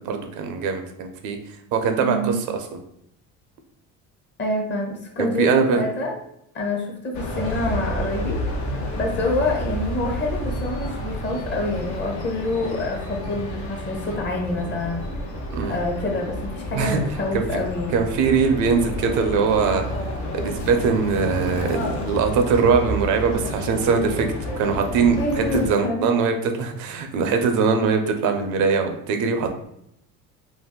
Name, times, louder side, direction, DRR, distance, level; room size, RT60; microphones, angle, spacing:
voice 1, 0.0-1.4 1.7-2.6 5.2-5.8 15.5-15.8 16.7-17.0 17.3-17.4 17.9-24.3 24.6-29.5, right 5 dB, 70° right, 5 dB, 0.6 m, -22 dB
voice 2, 2.0-2.4 4.4-6.1 6.5-8.4 8.9-15.1 15.7-18.0 25.2-26.1, left 1 dB, 35° left, 0 dB, 0.9 m, -26 dB
sound 1, 7.1-25.7, left 1 dB, 60° left, 0.7 m, -30 dB
2.6 x 2.5 x 3.6 m, 0.75 s
cardioid pair, 105°, 32 cm